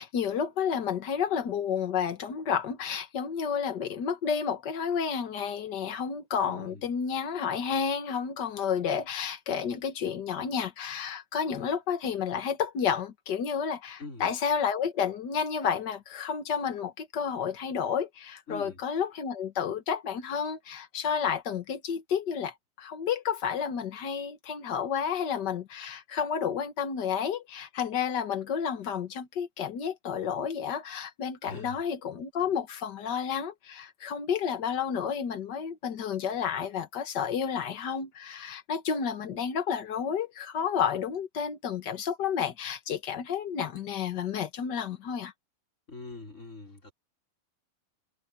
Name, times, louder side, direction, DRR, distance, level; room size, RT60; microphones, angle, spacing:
voice 1, 0.0-45.3, left 7 dB, 80° left, 0.9 m, -31 dB
voice 2, 6.5-6.9 14.0-14.3 18.5-18.8 31.4-31.8 45.9-46.9, left 3 dB, 20° left, 4.4 m, -43 dB
omnidirectional pair, 4.1 m